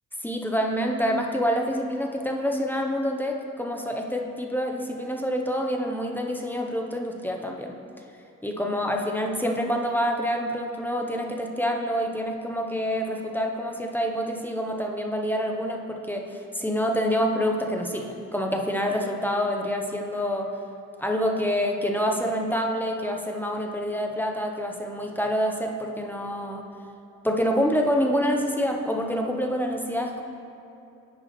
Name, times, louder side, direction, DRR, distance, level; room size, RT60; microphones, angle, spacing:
voice 1, 0.2-7.7 8.4-20.5 21.0-26.7 27.2-30.2, equal, 5° left, 1 dB, 0.6 m, -27 dB
10.0 x 5.4 x 3.0 m, 2.8 s
cardioid pair, 90°, 30 cm